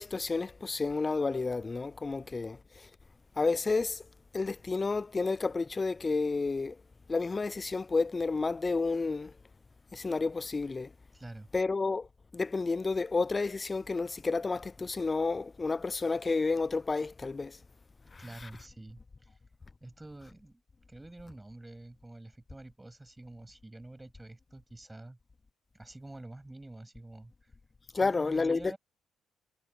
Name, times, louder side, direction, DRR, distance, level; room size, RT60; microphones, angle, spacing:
voice 1, 0.0-2.9 3.4-4.0 4.3-6.8 7.1-9.3 9.9-10.9 11.5-12.1 12.3-17.6 18.1-18.5 27.9-28.7, left 3 dB, 25° left, 0.3 m, -31 dB
voice 2, 11.1-11.5 18.2-19.4 19.8-20.6 20.9-25.2 25.7-27.5 27.9-28.8, right 2 dB, 15° right, 7.7 m, -48 dB
cardioid pair, 90°, 0 cm